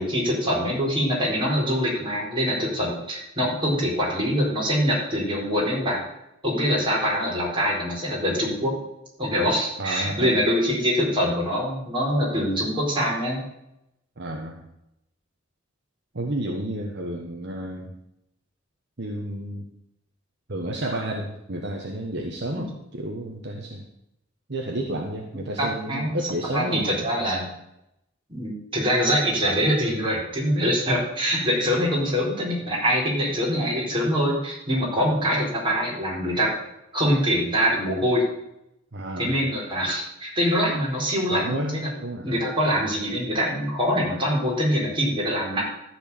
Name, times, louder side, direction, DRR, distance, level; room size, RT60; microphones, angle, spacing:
voice 1, 0.0-6.0 6.4-8.7 9.2-13.4 22.5-22.7 25.6-26.2 26.5-27.5 28.3-36.5 36.9-38.2 39.2-41.9 42.2-45.7, equal, 25° right, -3 dB, 4.2 m, -24 dB
voice 2, 9.8-10.4 14.2-14.6 16.1-17.9 19.0-19.7 20.5-23.8 24.5-26.9 31.7-31.8 34.9-35.1 38.9-39.4 41.3-42.3, right 1 dB, 55° right, 1 dB, 1.3 m, -31 dB
13.5 x 4.7 x 8.6 m, 0.83 s
head